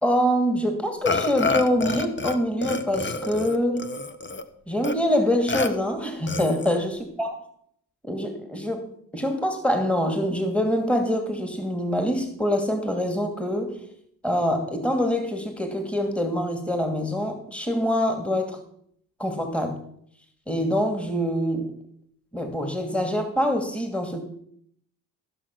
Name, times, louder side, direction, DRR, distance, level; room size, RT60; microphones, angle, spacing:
voice 1, 0.0-3.9 4.7-7.3 8.0-8.9 9.1-13.8 14.2-18.6 19.2-19.8 20.5-21.7 22.3-24.2, equal, 5° left, 5 dB, 2.6 m, -25 dB
Burping eructation, 1.1-2.4 2.6-4.4 4.8-4.9 5.5-5.7 6.3-6.8, left 3 dB, 30° left, 1.3 m, -28 dB
14.5 x 6.4 x 6.2 m, 0.67 s
supercardioid pair, 60°, 39 cm